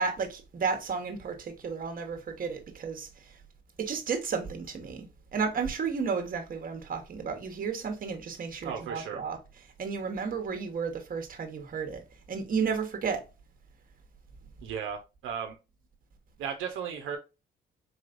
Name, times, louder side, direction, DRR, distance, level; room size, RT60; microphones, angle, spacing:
voice 1, 0.0-3.4 3.8-5.1 5.3-9.4 9.8-12.0 12.3-13.2, right 5 dB, 45° right, 1.2 m, -32 dB
voice 2, 8.6-9.2 14.6-15.6 16.4-17.2, right 7 dB, 85° right, 0.8 m, -35 dB
4.3 x 3.2 x 2.5 m
cardioid pair, 90°, 20 cm